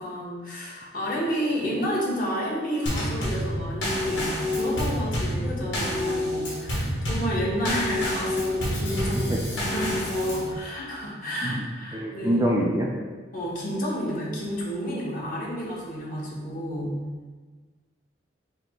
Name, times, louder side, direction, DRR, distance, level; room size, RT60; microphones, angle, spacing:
voice 1, 0.0-9.3 9.7-12.5 13.3-17.0, equal, 45° left, -5 dB, 1.1 m, -30 dB
Drum kit / Snare drum / Bass drum, 2.9-10.5, left 1 dB, 80° left, 1.4 m, -28 dB
voice 2, 11.9-12.9, equal, 15° right, -2 dB, 0.3 m, -25 dB
5.7 x 2.1 x 3.7 m, 1.4 s
head